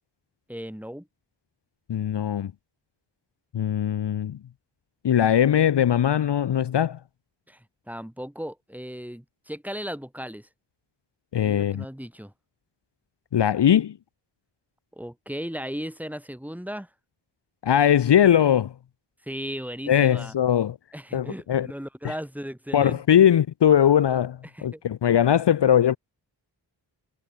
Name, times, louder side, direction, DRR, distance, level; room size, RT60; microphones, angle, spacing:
voice 1, 0.5-1.1 7.5-10.5 11.4-12.3 14.9-16.9 19.2-20.3 20.9-23.2 24.4-25.2, equal, 5° right, 2.5 m, -36 dB
voice 2, 1.9-2.5 3.5-4.4 5.0-7.0 11.3-11.8 13.3-13.9 17.6-18.7 19.9-20.8 21.1-21.7 22.0-22.1 22.7-26.0, left 9 dB, 60° left, 0.6 m, -20 dB
wide cardioid pair, 105°, 47 cm